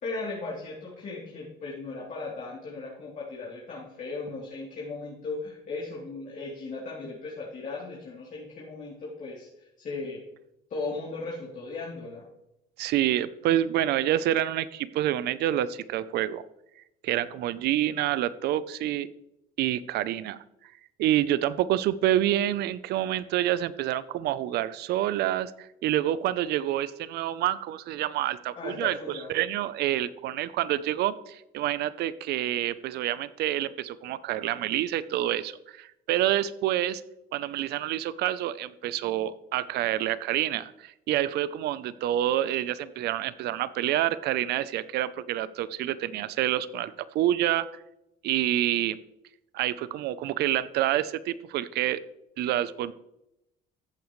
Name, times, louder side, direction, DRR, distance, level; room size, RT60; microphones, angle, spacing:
voice 1, 0.0-10.2 10.7-12.2 28.5-29.3, left 3 dB, 50° left, -6 dB, 3.1 m, -37 dB
voice 2, 12.8-16.4 17.0-19.1 19.6-20.4 21.0-37.0 37.3-47.7 48.2-49.0 49.5-52.0 52.4-52.9, right 12 dB, 75° right, 16 dB, 0.6 m, -27 dB
14.5 x 8.5 x 3.2 m, 0.86 s
cardioid pair, 110°, 17 cm